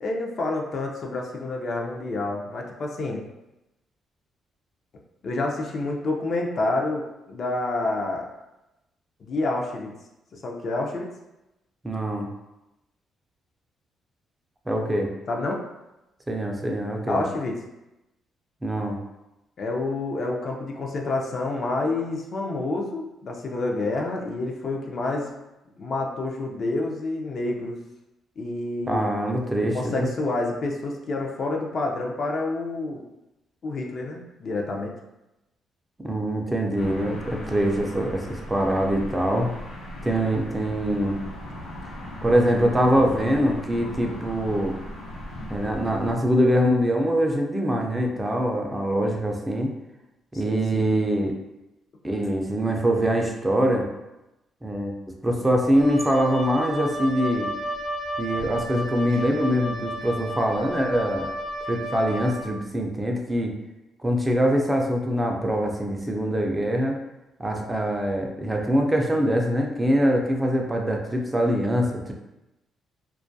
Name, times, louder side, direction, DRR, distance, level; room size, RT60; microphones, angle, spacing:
voice 1, 0.0-3.2 5.2-8.3 9.2-9.9 10.3-11.1 15.3-15.6 17.1-17.6 19.6-25.3 25.8-27.8 28.4-29.1 29.7-33.0 33.6-34.9 50.4-50.9, left 2 dB, 55° left, 0 dB, 0.4 m, -28 dB
voice 2, 11.8-12.3 14.7-15.1 16.3-17.2 18.6-19.0 28.9-30.1 36.0-39.5 40.0-41.2 42.2-44.8 45.5-49.7 50.3-51.4 52.0-53.9 54.6-57.5 58.2-61.3 61.7-63.5 64.0-67.0 67.4-72.1, equal, 15° right, 1 dB, 0.4 m, -23 dB
sound 1, 36.7-46.1, left 1 dB, 90° left, 0.7 m, -38 dB
Wind instrument woodwind instrument, 55.7-62.4, right 1 dB, 60° right, 0.7 m, -32 dB
2.3 x 2.2 x 2.6 m, 0.94 s
cardioid pair, 90°, 0 cm